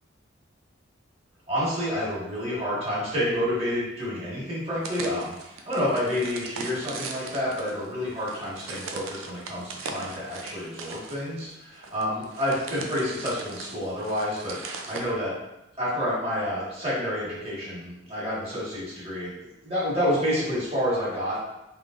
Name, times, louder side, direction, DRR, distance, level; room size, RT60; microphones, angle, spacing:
voice 1, 1.5-15.3 15.8-21.5, equal, 30° right, -9 dB, 1.4 m, -29 dB
sound 1, 4.8-15.0, right 4 dB, 75° right, 0.4 m, -39 dB
3.4 x 3.1 x 2.4 m, 0.91 s
head